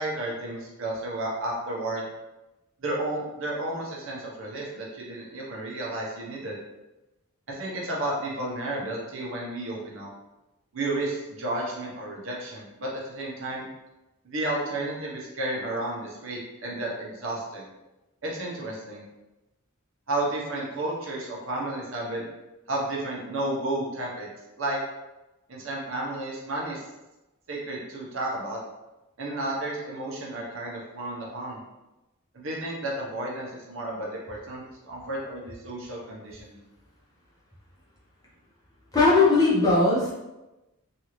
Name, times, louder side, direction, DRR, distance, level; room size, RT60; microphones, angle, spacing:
voice 1, 0.0-2.0 2.8-6.5 7.5-10.1 10.7-13.7 14.2-17.7 18.2-19.0 20.1-22.3 22.7-24.3 24.6-24.8 25.5-26.8 27.5-28.6 29.2-31.6 32.3-36.6, right 1 dB, 65° right, -3 dB, 0.8 m, -32 dB
voice 2, 38.9-40.1, left 3 dB, 15° left, -8 dB, 0.8 m, -19 dB
2.7 x 2.4 x 3.0 m, 1.0 s
head